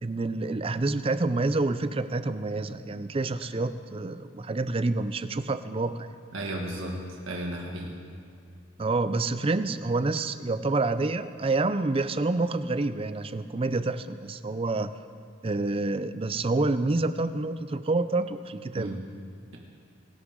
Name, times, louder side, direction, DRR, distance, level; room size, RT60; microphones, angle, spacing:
voice 1, 0.0-6.1 8.8-14.9 15.4-19.0, right 2 dB, 30° right, 12 dB, 0.5 m, -28 dB
voice 2, 6.3-7.9 18.7-19.0, right 1 dB, 80° right, -1 dB, 1.8 m, -34 dB
25.0 x 11.5 x 3.8 m, 2.4 s
head